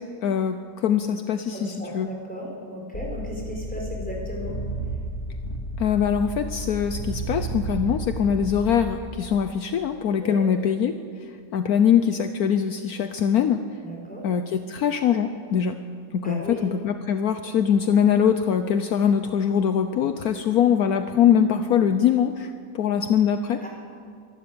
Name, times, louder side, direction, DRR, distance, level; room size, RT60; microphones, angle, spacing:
voice 1, 0.0-2.1 5.8-13.6 14.2-15.8 16.1-23.6, left 8 dB, 70° left, 8 dB, 1.2 m, -22 dB
voice 2, 1.5-4.6 10.2-10.5 13.8-14.2 16.2-16.6 23.6-23.7, equal, 5° left, -2 dB, 5.0 m, -35 dB
sound 1, 2.9-8.9, right 2 dB, 45° left, 2.8 m, -32 dB
24.5 x 12.5 x 8.7 m, 2.1 s
omnidirectional pair, 1.7 m